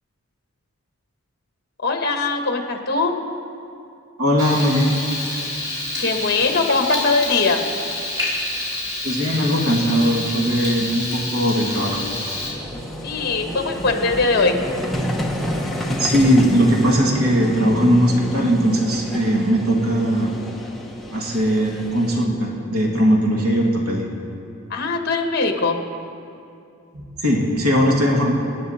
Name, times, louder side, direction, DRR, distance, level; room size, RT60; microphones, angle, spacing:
voice 1, 1.8-3.2 6.0-7.6 13.0-14.5 24.7-25.8, left 3 dB, 45° left, 4 dB, 1.4 m, -21 dB
voice 2, 4.2-5.0 9.0-12.0 16.0-20.3 21.1-24.1 26.9-28.3, equal, 80° right, -1 dB, 2.0 m, -19 dB
Frying (food), 4.4-12.5, left 2 dB, 15° right, 3.8 m, -28 dB
Vehicle, 6.6-6.7 8.6-8.7 8.9-22.3, equal, ahead, 1.0 m, -30 dB
26.0 x 9.5 x 4.2 m, 2.6 s
head